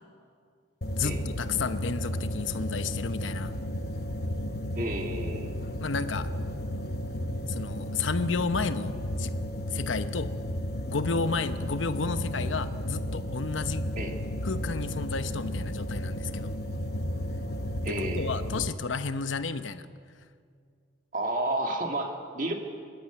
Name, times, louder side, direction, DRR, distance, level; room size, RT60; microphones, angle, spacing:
sound 1, 0.8-18.7, left 1 dB, 55° left, 1.0 m, -33 dB
voice 1, 0.9-3.5 5.8-6.3 7.5-9.3 9.7-10.3 10.9-13.8 14.4-16.5 17.9-19.8, left 4 dB, 85° left, 11 dB, 0.9 m, -32 dB
voice 2, 4.8-5.6 14.0-14.1 17.8-18.3 21.1-22.5, right 1 dB, 45° right, 3 dB, 2.2 m, -31 dB
24.5 x 11.5 x 9.1 m, 2.2 s
head